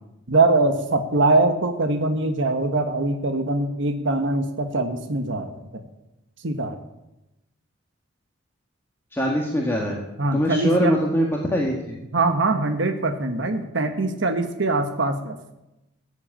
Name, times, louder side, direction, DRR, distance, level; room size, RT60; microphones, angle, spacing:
voice 1, 0.3-5.8 6.4-6.8 10.2-10.9 12.1-15.3, right 2 dB, 65° right, 7 dB, 1.2 m, -22 dB
voice 2, 9.1-10.0 10.3-12.0, equal, 10° left, -2 dB, 1.7 m, -23 dB
14.5 x 8.0 x 8.8 m, 0.93 s
head